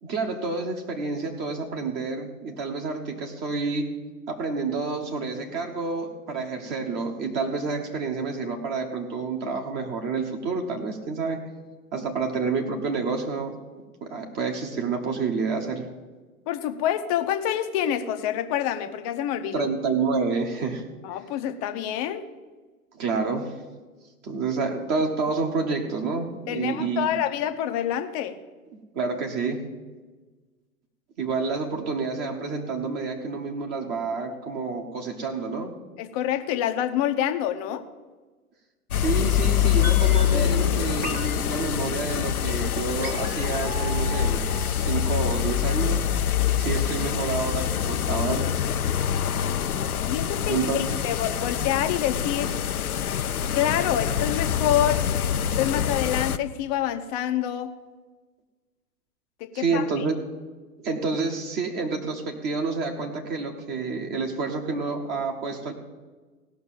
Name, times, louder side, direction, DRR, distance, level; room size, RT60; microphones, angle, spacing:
voice 1, 0.0-3.9 4.3-11.4 11.9-13.5 14.0-15.9 19.5-20.8 22.9-23.5 24.2-27.2 28.9-29.6 31.2-35.7 38.9-44.4 44.8-46.0 46.6-48.6 50.5-50.9 59.5-60.2 60.8-65.7, right 4 dB, 25° right, 2 dB, 1.1 m, -29 dB
voice 2, 16.5-19.7 21.0-22.3 26.5-28.4 36.0-37.8 50.1-52.5 53.5-55.0 55.6-57.7 59.4-60.0, left 11 dB, 25° left, 8 dB, 0.7 m, -27 dB
sound 1, 38.9-56.4, left 9 dB, 70° left, 0.7 m, -25 dB
sound 2, 39.8-45.9 46.1-46.2, equal, 5° right, 0.4 m, -37 dB
16.5 x 6.0 x 7.5 m, 1.3 s
figure-of-eight pair, 110°, 45 cm